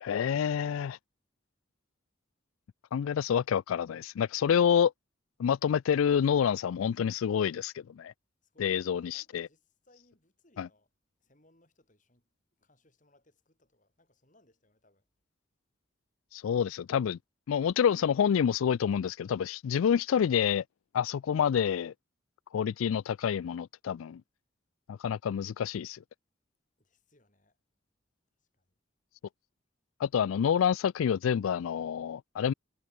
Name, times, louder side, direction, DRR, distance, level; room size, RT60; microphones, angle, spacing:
voice 1, 0.0-1.0 2.9-4.9 5.4-8.1 8.6-9.5 10.6-10.7 16.3-17.2 17.5-20.6 20.9-21.9 22.5-24.2 24.9-26.0 30.0-32.5, left 8 dB, 90° left, 0.3 m, -28 dB
voice 2, 8.4-10.9 11.2-12.3 12.6-15.1 26.8-27.6 28.4-28.7, left 1 dB, 40° left, 7.9 m, -67 dB
head